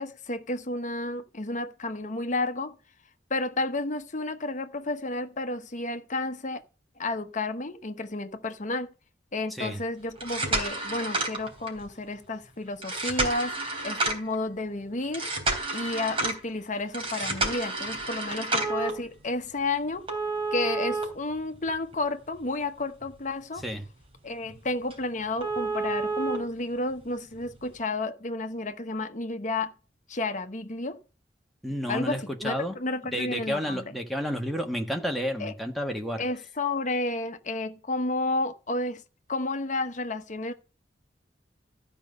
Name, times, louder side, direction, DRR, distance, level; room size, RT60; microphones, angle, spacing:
voice 1, 0.0-2.8 3.3-6.6 7.0-8.9 9.3-13.6 13.8-15.3 15.7-20.1 20.5-23.6 24.2-29.7 30.1-31.0 31.9-33.8 35.4-35.5 36.2-39.0 39.3-40.5, left 2 dB, 45° left, 1.0 m, -31 dB
voice 2, 9.5-9.8 23.6-23.8 31.6-32.7 33.1-36.2, equal, ahead, 1.4 m, -31 dB
sound 1, 10.1-11.9 12.8-14.4 15.1-16.4 16.9-18.9 20.1-21.9 22.4-22.5 23.0-23.1 23.6-23.7 24.0-24.1 24.5-24.6 24.9-25.0 25.4-26.4 27.5-27.6, right 2 dB, 30° right, 3.5 m, -30 dB
13.5 x 5.3 x 6.4 m
head